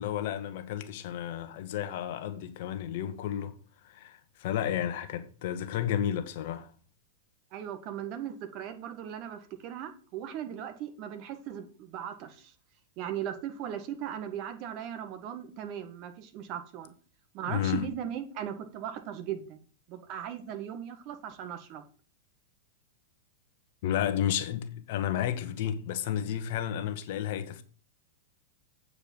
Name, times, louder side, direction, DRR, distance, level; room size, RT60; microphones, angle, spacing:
voice 1, 0.0-3.6 3.9-6.7 17.5-17.8 23.8-27.6, left 10 dB, 55° left, 1.1 m, -32 dB
voice 2, 7.5-12.5 13.0-16.9 17.3-19.6 19.9-21.8, right 9 dB, 45° right, 1.6 m, -38 dB
8.6 x 4.8 x 7.3 m
hypercardioid pair, 100°, 0 cm